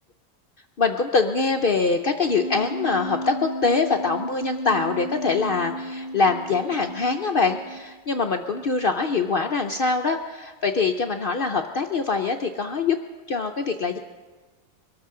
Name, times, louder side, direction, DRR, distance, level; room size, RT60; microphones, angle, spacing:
voice 1, 0.8-13.0 13.3-14.0, left 4 dB, 60° left, 5 dB, 0.5 m, -24 dB
Wind instrument woodwind instrument, 2.3-8.0, equal, 10° right, 1.7 m, -34 dB
23.0 x 13.0 x 3.7 m, 1.3 s
omnidirectional pair, 1.6 m